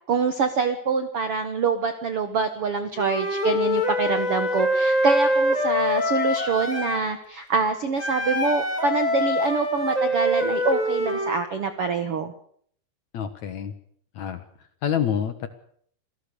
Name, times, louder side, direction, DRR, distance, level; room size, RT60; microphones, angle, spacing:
voice 1, 0.1-12.3, right 4 dB, 65° right, 9 dB, 1.5 m, -25 dB
Wind instrument woodwind instrument, 3.0-7.0 8.0-11.4, left 1 dB, 10° left, 3.2 m, -24 dB
voice 2, 13.1-13.7 14.1-14.4 14.8-15.5, left 8 dB, 60° left, 10 dB, 2.2 m, -27 dB
27.0 x 17.0 x 6.9 m, 0.63 s
omnidirectional pair, 4.6 m